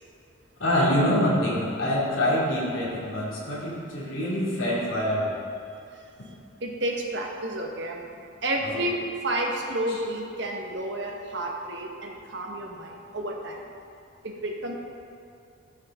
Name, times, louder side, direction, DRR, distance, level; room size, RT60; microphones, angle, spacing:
voice 1, 0.6-5.3 8.6-8.8, equal, 75° left, -7 dB, 2.5 m, -25 dB
voice 2, 6.6-8.1 8.4-13.6 14.2-14.7, right 1 dB, 55° right, 1 dB, 1.2 m, -31 dB
14.5 x 6.5 x 3.7 m, 2.6 s
head